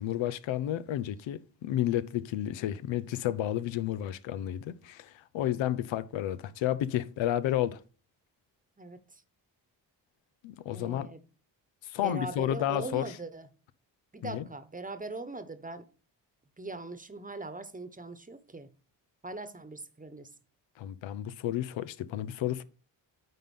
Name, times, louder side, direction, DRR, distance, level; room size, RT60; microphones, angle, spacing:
voice 1, 0.0-7.8 10.4-11.1 11.8-13.1 14.2-14.4 20.8-22.6, left 12 dB, 85° left, 0.7 m, -31 dB
voice 2, 8.8-9.2 10.7-11.2 12.0-13.5 14.1-15.9 16.6-18.7 19.2-20.3, right 2 dB, 20° right, 1.1 m, -41 dB
9.2 x 3.9 x 5.5 m
cardioid pair, 60°, 45 cm